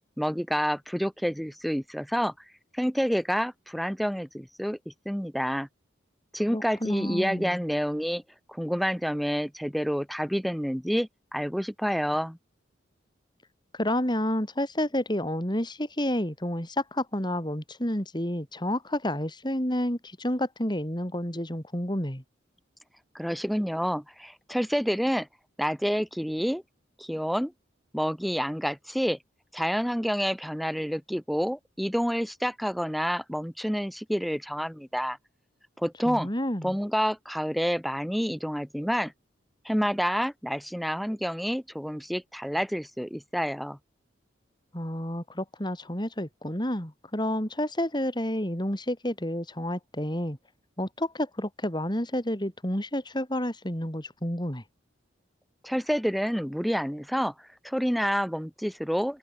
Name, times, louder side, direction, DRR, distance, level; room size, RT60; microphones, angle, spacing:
voice 1, 0.2-2.3 2.7-5.7 6.3-8.2 8.5-12.4 23.1-25.3 25.6-26.6 27.0-27.5 27.9-29.2 29.5-35.2 35.8-36.3 36.6-39.1 39.7-43.8 55.6-57.3 57.6-59.2, equal, ahead, 5.4 m, -28 dB
voice 2, 6.5-7.6 13.7-22.2 36.1-36.8 44.7-50.4 50.8-54.6, left 1 dB, 25° left, 5.3 m, -30 dB
head